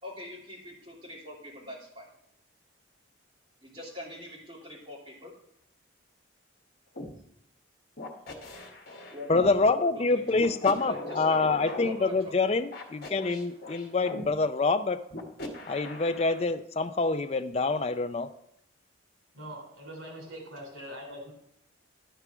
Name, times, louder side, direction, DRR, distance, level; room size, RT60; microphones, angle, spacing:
voice 1, 0.0-2.1 3.6-5.3 9.1-12.4 13.1-14.0, left 1 dB, 25° right, -5 dB, 2.9 m, -43 dB
sound 1, 6.9-7.1 8.0-9.5 10.3-11.9 12.7-14.2 15.1-16.4, left 1 dB, 50° left, 1.4 m, -40 dB
voice 2, 9.3-15.0 15.7-18.3, left 3 dB, 30° left, 9 dB, 0.4 m, -26 dB
voice 3, 19.3-21.3, equal, 90° right, 1 dB, 3.1 m, -42 dB
11.5 x 4.8 x 5.9 m, 0.74 s
head